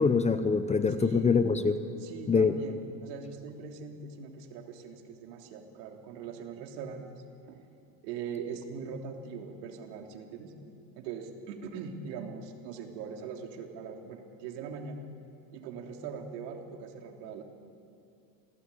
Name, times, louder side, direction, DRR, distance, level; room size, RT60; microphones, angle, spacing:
voice 1, 0.0-1.8 2.3-2.5, left 5 dB, 15° left, 10 dB, 0.7 m, -24 dB
voice 2, 2.0-7.1 7.5-7.6 8.0-10.5 10.9-15.1 15.5-17.4, right 6 dB, 85° right, 3 dB, 3.3 m, -41 dB
27.5 x 18.0 x 8.5 m, 2.6 s
cardioid pair, 150°, 49 cm